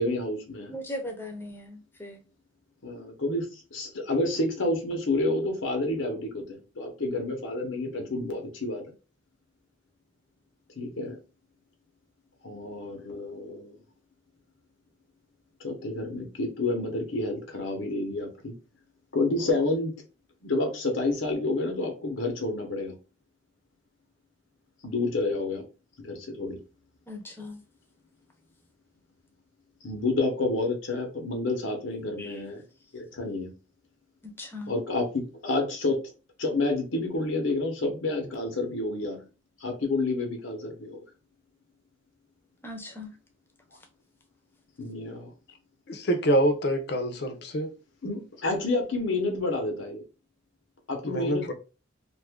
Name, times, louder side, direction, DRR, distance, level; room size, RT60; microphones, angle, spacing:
voice 1, 0.0-0.7 2.8-8.9 10.8-11.2 12.4-13.8 15.6-18.5 19.1-19.9 20.4-23.0 24.8-25.6 26.0-26.6 29.8-32.6 32.9-33.5 34.7-36.0 36.4-39.3 39.6-41.0 44.8-45.3 48.0-50.0 50.9-51.5, left 2 dB, 90° left, 0.9 m, -29 dB
voice 2, 0.7-2.2 27.1-27.6 32.2-32.4 34.2-34.7 42.6-43.1, left 1 dB, 10° left, 0.6 m, -39 dB
voice 3, 45.9-47.7 51.0-51.5, right 1 dB, 60° left, 0.6 m, -26 dB
2.7 x 2.5 x 3.5 m
head